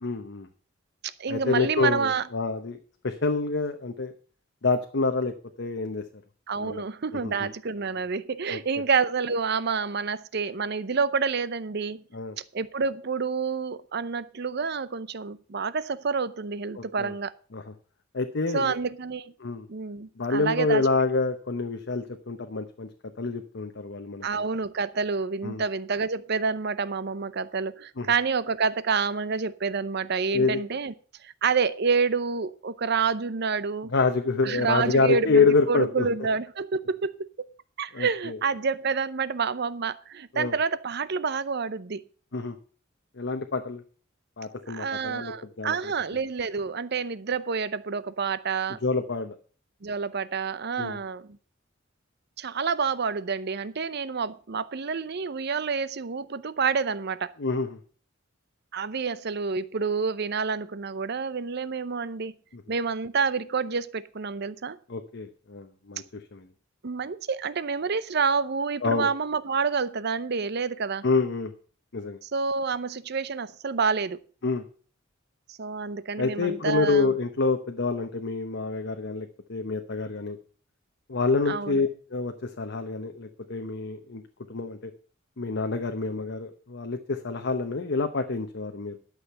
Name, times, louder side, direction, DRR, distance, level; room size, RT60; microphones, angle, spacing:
voice 1, 0.0-0.5 1.3-2.8 3.0-4.1 4.6-6.0 6.6-6.8 7.1-7.5 8.5-8.6 12.1-12.4 16.8-17.1 17.5-17.6 18.1-18.7 19.4-19.7 20.2-22.9 23.2-24.3 25.4-25.6 28.0-28.1 30.3-30.6 33.9-36.1 37.9-38.4 40.3-40.5 42.3-42.6 43.2-43.8 44.4-45.9 48.8-49.4 50.8-51.0 57.4-57.8 62.5-62.6 64.9-66.4 68.8-69.1 71.0-71.5 71.9-72.2 74.4-74.6 76.2-80.4 81.1-84.2 84.5-84.9 85.4-89.0, left 3 dB, 60° left, 0.9 m, -27 dB
voice 2, 1.0-2.3 6.5-12.0 12.5-17.3 18.5-19.3 19.7-20.8 24.2-30.9 31.2-33.9 34.4-37.5 37.8-42.0 44.7-48.8 49.8-51.4 52.4-57.3 58.7-62.3 62.7-64.8 66.8-71.0 72.2-74.2 75.5-77.1 81.5-81.9, right 5 dB, 55° right, 0.7 m, -28 dB
11.5 x 6.5 x 6.7 m
head